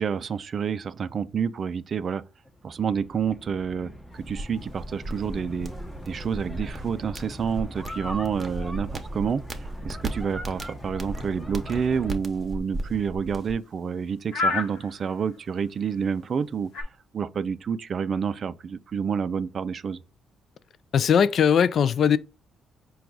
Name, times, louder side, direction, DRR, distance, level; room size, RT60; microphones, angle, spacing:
voice 1, 0.0-2.2 2.6-5.7 6.0-9.4 9.8-16.7 17.1-20.0, right 6 dB, 50° right, 0.3 m, -28 dB
sound 1, 2.4-12.1, equal, 5° left, 0.8 m, -41 dB
sound 2, 4.1-16.8, left 3 dB, 90° left, 0.9 m, -39 dB
sound 3, 4.3-13.5, right 1 dB, 25° right, 0.8 m, -36 dB
voice 2, 20.9-22.2, left 7 dB, 60° left, 0.3 m, -19 dB
4.6 x 2.3 x 3.8 m
cardioid pair, 90°, 0 cm